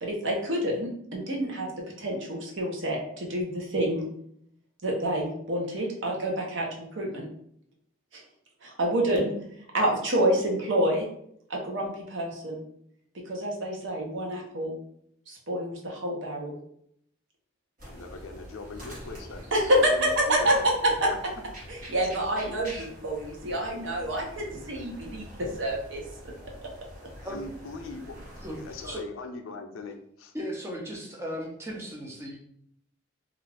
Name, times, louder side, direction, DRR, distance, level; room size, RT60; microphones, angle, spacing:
voice 1, 0.0-1.7 2.0-4.1 4.8-7.3 8.1-8.2 8.6-9.3 9.7-11.1 11.5-12.6 13.3-14.8 15.3-16.5 19.5-21.1 21.7-22.7 23.0-26.0 26.6-26.7, right 1 dB, 65° right, 0 dB, 0.7 m, -27 dB
voice 2, 17.8-19.4 19.8-20.7 21.0-21.2 22.4-22.6 27.2-28.2 28.5-30.3, left 3 dB, 90° left, 5 dB, 0.5 m, -41 dB
sound 1, 17.8-29.0, equal, 45° right, 1.2 m, -45 dB
voice 3, 30.3-32.4, equal, 15° right, -1 dB, 0.6 m, -36 dB
2.4 x 2.3 x 3.3 m, 0.70 s
head